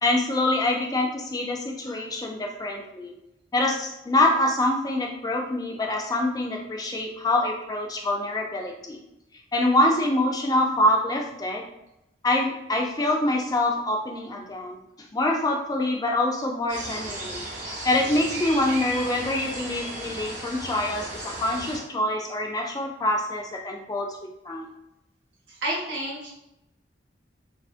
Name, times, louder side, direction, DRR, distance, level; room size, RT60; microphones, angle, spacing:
voice 1, 0.0-3.1 3.5-9.0 9.5-11.6 12.2-14.8 15.1-17.5 17.8-24.1 24.5-24.7, left 1 dB, 20° left, 1 dB, 0.3 m, -25 dB
sound 1, 16.7-21.8, right 1 dB, 45° right, 0.7 m, -35 dB
voice 2, 25.5-26.3, right 1 dB, 80° right, -3 dB, 0.8 m, -30 dB
2.4 x 2.4 x 2.4 m, 0.88 s
head